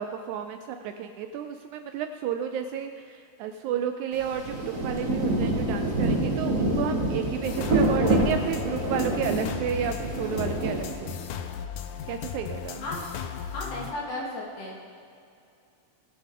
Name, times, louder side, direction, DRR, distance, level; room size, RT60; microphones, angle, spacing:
voice 1, 0.0-11.2 12.1-12.9, right 8 dB, 80° right, 7 dB, 1.8 m, -32 dB
Rain, 4.1-11.4, right 1 dB, 40° right, 1.1 m, -27 dB
sound 1, 7.4-13.9, left 9 dB, 80° left, 1.9 m, -37 dB
voice 2, 13.5-14.8, left 2 dB, 55° left, -5 dB, 3.0 m, -34 dB
20.0 x 6.8 x 3.7 m, 2.4 s
omnidirectional pair, 3.7 m